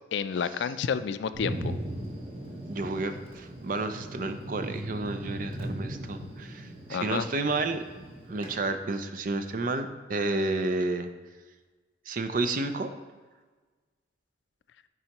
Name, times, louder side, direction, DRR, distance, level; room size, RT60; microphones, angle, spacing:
voice 1, 0.1-1.7 6.9-7.3, left 6 dB, 85° left, 13 dB, 0.3 m, -30 dB
Thunder, 1.3-8.5, right 1 dB, 30° right, 1.2 m, -38 dB
voice 2, 2.7-7.8 8.3-11.1 12.1-12.9, right 2 dB, 50° right, 9 dB, 0.5 m, -31 dB
9.6 x 4.7 x 2.9 m, 1.3 s
head